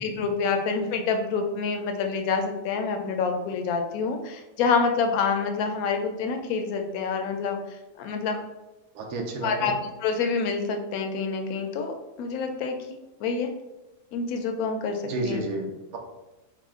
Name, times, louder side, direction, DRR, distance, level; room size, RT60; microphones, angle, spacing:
voice 1, 0.0-8.4 9.4-9.7 10.0-12.8 13.2-13.5 14.1-15.4, left 5 dB, 75° left, 4 dB, 1.0 m, -27 dB
voice 2, 8.9-9.7 15.1-16.0, right 2 dB, 70° right, 2 dB, 1.1 m, -31 dB
4.8 x 2.1 x 3.5 m, 1.0 s
omnidirectional pair, 1.6 m